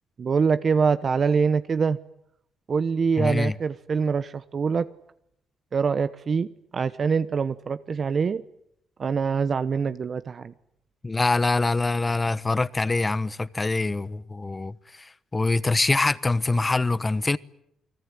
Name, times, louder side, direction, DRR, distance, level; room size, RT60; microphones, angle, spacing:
voice 1, 0.2-2.0 2.7-4.9 5.7-8.4 9.0-10.5, right 5 dB, 45° right, 1.0 m, -24 dB
voice 2, 3.2-3.5 11.0-17.4, left 3 dB, 20° left, 1.1 m, -24 dB
29.0 x 20.5 x 9.9 m
cardioid pair, 90°, 0 cm